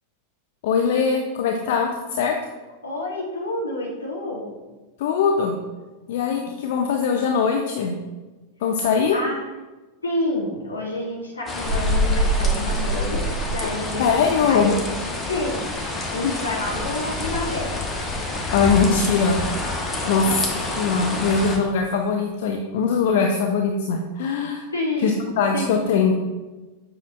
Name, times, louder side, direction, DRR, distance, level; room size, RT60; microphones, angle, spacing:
voice 1, 0.6-2.4 5.0-5.5 6.1-7.9 8.6-9.2 14.0-14.7 18.5-19.4 20.1-20.3 20.8-24.6 25.0-26.1, left 5 dB, 55° left, 3 dB, 0.5 m, -21 dB
voice 2, 2.8-4.5 9.1-9.5 10.0-14.8 15.3-15.6 16.1-17.7 20.0-20.4 24.7-25.2 25.5-25.9, left 1 dB, 75° left, -4 dB, 1.8 m, -29 dB
sound 1, 11.5-21.6, left 1 dB, 15° left, 1.2 m, -26 dB
7.9 x 5.7 x 2.4 m, 1.2 s
figure-of-eight pair, 90°, 0 cm